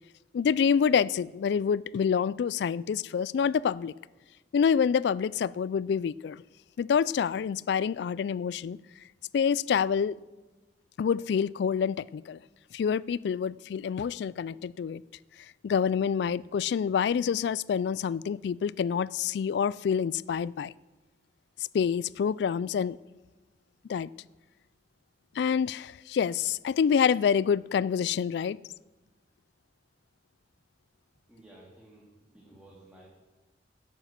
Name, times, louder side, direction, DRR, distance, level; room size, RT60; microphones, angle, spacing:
voice 1, 0.3-3.9 4.5-6.4 6.8-8.8 9.3-10.2 11.0-12.4 12.7-15.0 15.6-20.7 21.6-23.0 23.9-24.1 25.4-28.6, left 7 dB, 65° left, 0.3 m, -27 dB
voice 2, 31.3-32.1 32.3-33.1, right 1 dB, 5° right, 2.1 m, -54 dB
11.0 x 9.2 x 7.4 m
head